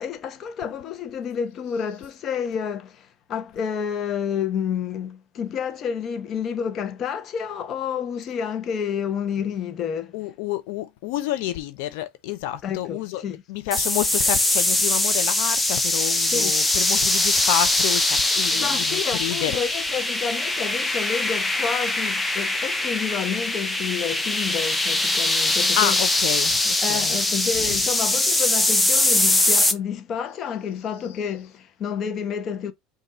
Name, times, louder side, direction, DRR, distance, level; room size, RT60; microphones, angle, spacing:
voice 1, 0.0-10.1 12.6-13.4 16.3-16.5 18.5-26.2 26.8-32.7, left 7 dB, 45° left, 0.9 m, -29 dB
voice 2, 10.1-13.2 13.5-19.6 25.8-27.2, left 13 dB, 70° left, 0.6 m, -29 dB
sound 1, 13.7-29.7, left 2 dB, 10° left, 0.8 m, -22 dB
5.3 x 2.6 x 3.0 m
hypercardioid pair, 75°, 0 cm